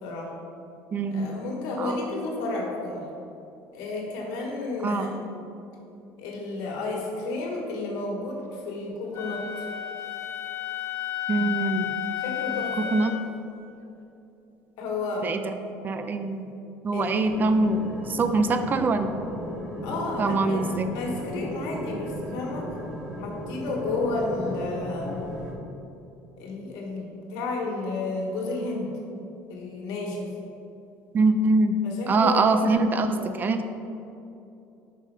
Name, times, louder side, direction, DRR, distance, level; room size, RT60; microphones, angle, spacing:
voice 1, 0.0-0.3 1.1-3.1 3.7-5.2 6.2-9.7 12.2-12.9 14.8-15.3 16.9-17.3 19.8-20.7 20.9-22.8 23.2-25.2 26.4-28.9 29.5-30.3 31.8-32.7 33.1-33.3, left 3 dB, 80° left, -1 dB, 1.5 m, -32 dB
voice 2, 0.9-1.3 1.8-2.0 4.8-5.2 11.3-11.9 12.8-13.1 15.2-15.5 15.8-16.5 16.8-19.1 20.2-20.9 31.1-31.7 32.1-33.6, right 3 dB, 30° right, 9 dB, 0.4 m, -24 dB
Wind instrument woodwind instrument, 9.1-13.3, left 11 dB, 40° left, 0.8 m, -32 dB
sound 1, 17.2-25.5, left 1 dB, 10° right, 1.0 m, -36 dB
5.6 x 5.4 x 4.9 m, 2.8 s
cardioid pair, 125°, 6 cm